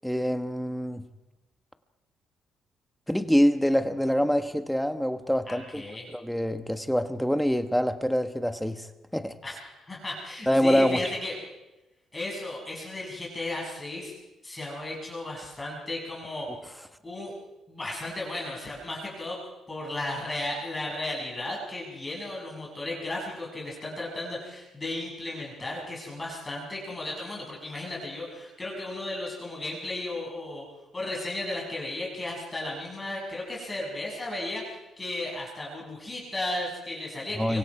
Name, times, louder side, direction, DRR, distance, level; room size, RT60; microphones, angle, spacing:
voice 1, 0.0-1.0 3.1-5.9 6.1-8.9 9.1-9.3 10.5-11.0 37.3-37.6, equal, ahead, 8 dB, 1.2 m, -25 dB
voice 2, 5.5-6.0 9.4-11.4 12.1-14.1 14.4-16.5 17.0-17.3 17.7-19.4 19.7-30.7 30.9-37.6, left 1 dB, 15° left, -3 dB, 6.9 m, -35 dB
25.5 x 24.5 x 4.9 m, 1.0 s
cardioid pair, 140°, 0 cm